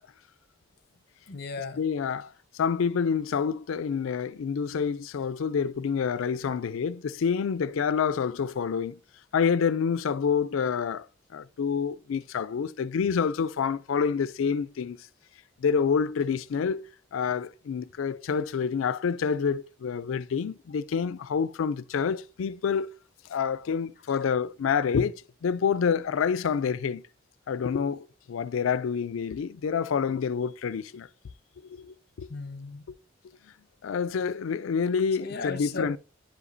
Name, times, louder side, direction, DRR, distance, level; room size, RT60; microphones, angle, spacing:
voice 1, 1.3-1.8 24.1-24.2 32.3-32.8 35.2-35.9, left 4 dB, 55° left, 0.8 m, -36 dB
voice 2, 1.8-9.0 9.3-11.1 11.3-15.0 15.6-16.8 17.1-22.9 23.3-25.1 25.4-27.0 27.5-31.1 31.7-32.3 33.8-36.0, left 6 dB, 90° left, 0.4 m, -27 dB
10.5 x 5.0 x 2.6 m
head